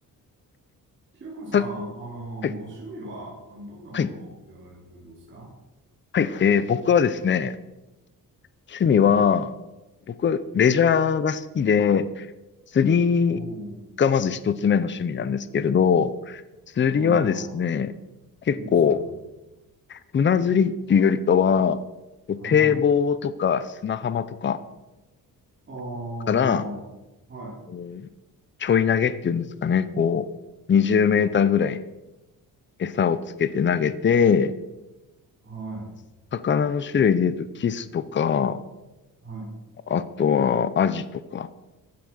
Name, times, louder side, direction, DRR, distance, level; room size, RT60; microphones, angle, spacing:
voice 1, 1.1-5.5 13.3-13.8 16.9-17.6 18.5-19.1 22.4-22.8 25.7-26.9 27.3-27.6 35.4-35.9 39.2-39.5, right 2 dB, 30° right, -5 dB, 4.7 m, -37 dB
voice 2, 6.1-7.6 8.7-9.5 10.1-12.3 12.7-13.4 14.0-16.4 16.8-17.9 18.5-19.0 19.9-21.8 22.3-24.6 26.3-26.6 27.7-28.1 28.6-30.3 30.7-31.8 32.8-34.5 36.3-38.6 39.9-41.5, left 7 dB, 30° left, 14 dB, 0.7 m, -21 dB
16.0 x 11.5 x 6.5 m, 1.0 s
wide cardioid pair, 170°, 36 cm